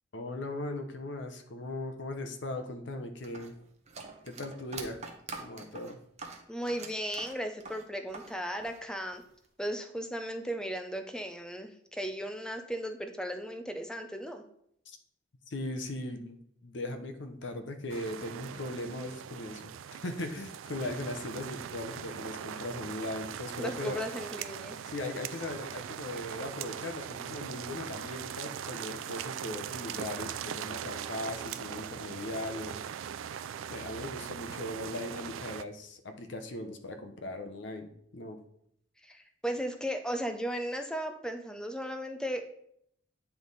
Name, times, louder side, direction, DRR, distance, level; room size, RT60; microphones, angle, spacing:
voice 1, 0.1-3.5 4.2-5.0 5.4-6.0 14.9-15.0 15.5-24.0 24.9-32.9 33.1-33.2 33.7-38.4, left 1 dB, 65° left, 6 dB, 0.7 m, -39 dB
sound 1, 3.2-8.3 8.6-9.5, right 4 dB, 35° right, 0.8 m, -44 dB
voice 2, 6.5-9.2 9.6-14.4 23.6-24.8 39.0-42.5, equal, 5° left, 6 dB, 0.5 m, -36 dB
sound 2, 17.9-35.6, right 8 dB, 85° right, 0.3 m, -40 dB
9.1 x 3.4 x 4.0 m, 0.71 s
head